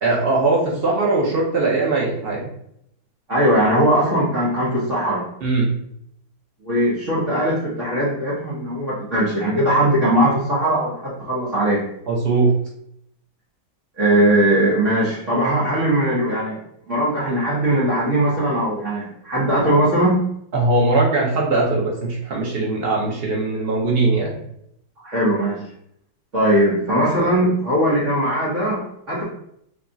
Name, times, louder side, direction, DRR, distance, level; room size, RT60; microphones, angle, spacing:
voice 1, 0.0-2.4 5.4-5.7 12.1-12.5 20.5-24.4, right 3 dB, 85° right, -3 dB, 0.5 m, -20 dB
voice 2, 3.3-5.2 6.6-11.8 14.0-16.6 16.9-20.2 25.0-25.6 26.3-29.2, right 1 dB, 45° right, -8 dB, 1.2 m, -19 dB
3.5 x 2.3 x 3.9 m, 0.72 s
omnidirectional pair, 2.1 m